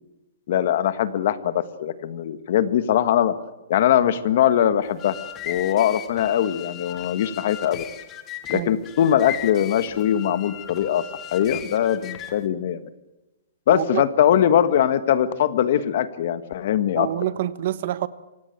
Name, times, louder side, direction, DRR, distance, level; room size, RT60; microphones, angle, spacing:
voice 1, 0.5-3.3 3.7-5.1 5.4-7.8 8.5-11.0 11.3-12.8 13.7-17.1, left 10 dB, 45° left, 13 dB, 1.5 m, -21 dB
sound 1, 4.8-12.5, left 12 dB, 20° left, 1.2 m, -37 dB
voice 2, 13.7-14.0 17.0-18.1, right 13 dB, 45° right, 15 dB, 1.1 m, -26 dB
25.0 x 17.5 x 9.3 m, 1.0 s
hypercardioid pair, 170°, 0 cm